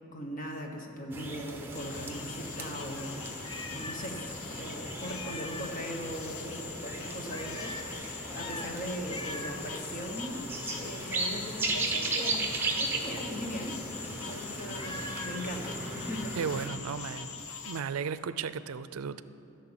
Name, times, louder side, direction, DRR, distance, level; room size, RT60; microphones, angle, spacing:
voice 1, 0.1-3.2 3.7-4.2 4.5-7.7 8.3-13.8 14.1-16.4, equal, 40° left, 2 dB, 1.3 m, -39 dB
sound 1, 1.1-16.7, right 2 dB, 10° right, 1.0 m, -37 dB
sound 2, 1.7-17.8, left 6 dB, 75° left, 0.8 m, -43 dB
Meow, 2.7-4.2 4.5-4.6 5.0-5.8 7.3-7.9 8.3-8.7 9.1-9.7 12.5-13.1 14.7-15.5, left 2 dB, 20° left, 0.5 m, -43 dB
voice 2, 16.4-19.2, right 6 dB, 85° right, 14 dB, 0.4 m, -35 dB
12.5 x 6.7 x 8.8 m, 2.7 s
head